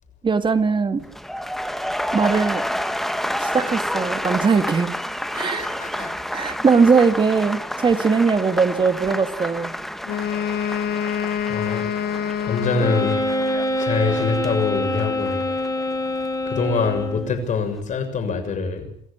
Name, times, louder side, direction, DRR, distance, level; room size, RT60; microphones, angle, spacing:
voice 1, 0.2-1.0 2.1-2.7 3.4-4.9 5.3-9.8, right 5 dB, 30° right, 9 dB, 2.2 m, -20 dB
sound 1, 1.0-17.1 17.4-17.8, equal, ahead, 1.4 m, -30 dB
voice 2, 5.5-6.1 6.4-6.5 11.5-11.8 12.5-13.2 13.8-15.4 16.4-18.9, left 5 dB, 50° left, 6 dB, 6.8 m, -24 dB
Wind instrument woodwind instrument, 10.0-13.8, left 8 dB, 70° left, 1.2 m, -26 dB
Wind instrument woodwind instrument 2, 12.8-17.4, left 1 dB, 20° left, 5.2 m, -25 dB
27.5 x 14.5 x 8.5 m, 0.62 s
cardioid pair, 110°, 17 cm